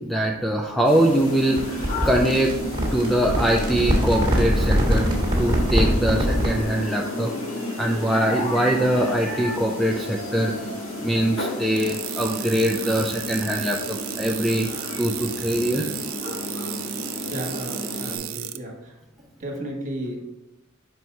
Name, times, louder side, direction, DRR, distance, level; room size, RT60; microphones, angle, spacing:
voice 1, 0.0-2.5 2.9-7.3 7.8-10.5 11.0-14.7 15.0-15.9, right 1 dB, ahead, 0 dB, 0.4 m, -23 dB
sound 1, 0.8-18.2, left 1 dB, 75° left, 2.4 m, -31 dB
sound 2, 1.6-6.6, equal, 25° right, 1.6 m, -23 dB
sound 3, 11.8-18.6, right 14 dB, 70° right, 0.4 m, -34 dB
voice 2, 17.3-19.0 19.4-20.2, right 1 dB, 40° right, 0 dB, 1.5 m, -33 dB
5.4 x 4.7 x 4.5 m, 0.98 s
head